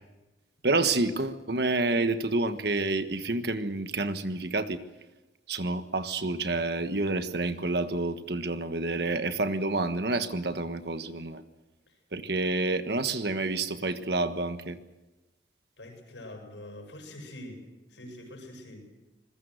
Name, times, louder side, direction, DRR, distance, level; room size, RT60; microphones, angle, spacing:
voice 1, 0.6-4.8 5.5-11.4 12.1-14.8, right 2 dB, 60° right, 9 dB, 1.4 m, -28 dB
voice 2, 15.8-18.9, left 1 dB, 85° left, 3 dB, 7.6 m, -45 dB
26.5 x 21.0 x 6.6 m, 1.1 s
head